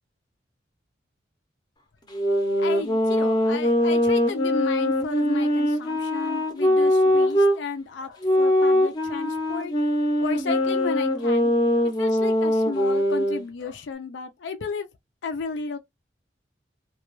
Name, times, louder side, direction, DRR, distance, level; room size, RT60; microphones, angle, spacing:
sound 1, 2.1-7.6 8.2-13.4, left 1 dB, 20° left, 0.5 m, -22 dB
voice 1, 2.6-9.7 10.2-14.9 15.2-15.8, left 4 dB, 75° left, 0.4 m, -33 dB
2.2 x 2.2 x 3.0 m
head